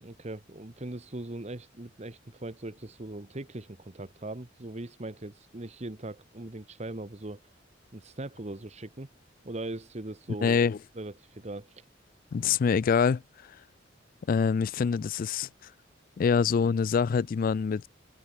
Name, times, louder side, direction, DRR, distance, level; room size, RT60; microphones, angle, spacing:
voice 1, 0.0-7.4 7.9-9.1 9.4-11.8, right 2 dB, 35° right, 1.2 m, -40 dB
voice 2, 10.4-10.8 12.3-13.2 14.3-15.7 16.2-17.9, left 6 dB, 45° left, 0.3 m, -25 dB
head